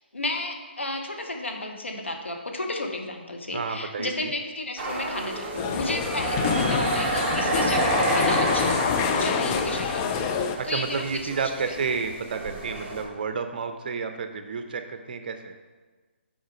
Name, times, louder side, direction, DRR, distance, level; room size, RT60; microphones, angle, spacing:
voice 1, 0.1-10.2 10.6-11.3, left 2 dB, 85° left, 3 dB, 1.1 m, -32 dB
voice 2, 3.5-4.3 10.6-15.5, right 5 dB, 50° right, 7 dB, 0.7 m, -31 dB
sound 1, 4.8-13.0, right 3 dB, 20° right, 1.0 m, -30 dB
sound 2, 5.6-10.6, left 7 dB, 25° left, 0.4 m, -26 dB
sound 3, 9.7-11.4, left 3 dB, 55° left, 0.8 m, -47 dB
6.2 x 4.4 x 5.1 m, 1.4 s
figure-of-eight pair, 140°, 6 cm